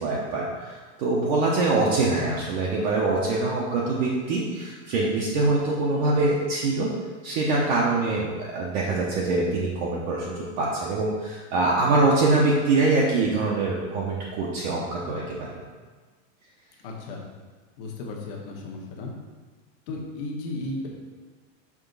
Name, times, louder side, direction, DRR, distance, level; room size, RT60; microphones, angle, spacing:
voice 1, 0.0-6.9 7.2-15.5, right 3 dB, 35° right, -4 dB, 0.8 m, -24 dB
voice 2, 16.8-17.2 17.8-19.1 19.9-20.9, left 2 dB, 45° left, 0 dB, 1.2 m, -34 dB
6.0 x 3.5 x 5.3 m, 1.4 s
supercardioid pair, 175°, 37 cm